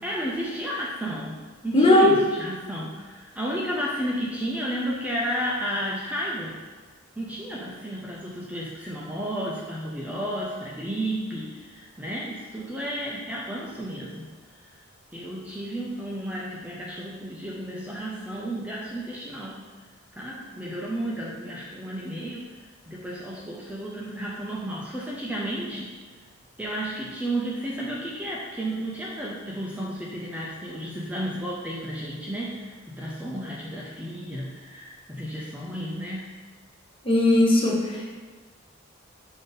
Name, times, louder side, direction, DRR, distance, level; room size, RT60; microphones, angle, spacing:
voice 1, 0.0-6.6 7.2-14.3 15.1-19.7 20.1-22.5 22.9-25.9 26.6-36.3, right 1 dB, 5° right, -5 dB, 0.4 m, -32 dB
voice 2, 1.7-2.1 37.0-38.1, left 1 dB, 25° left, -2 dB, 0.7 m, -18 dB
5.2 x 2.6 x 3.8 m, 1.4 s
head